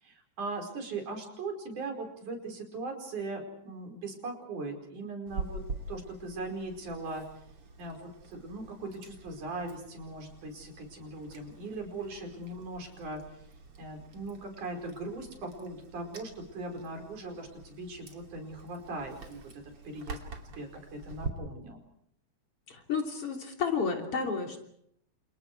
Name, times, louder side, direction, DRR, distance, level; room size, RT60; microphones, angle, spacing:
voice 1, 0.0-5.6 5.9-7.2 7.8-13.2 13.8-20.2 20.5-21.8, right 2 dB, 90° right, 3 dB, 6.4 m, -39 dB
Chewing mastication, 5.3-21.3, right 4 dB, 50° right, 3.7 m, -46 dB
voice 2, 22.7-24.6, left 5 dB, 50° left, 3 dB, 4.0 m, -31 dB
30.0 x 28.5 x 4.7 m, 0.71 s
omnidirectional pair, 3.4 m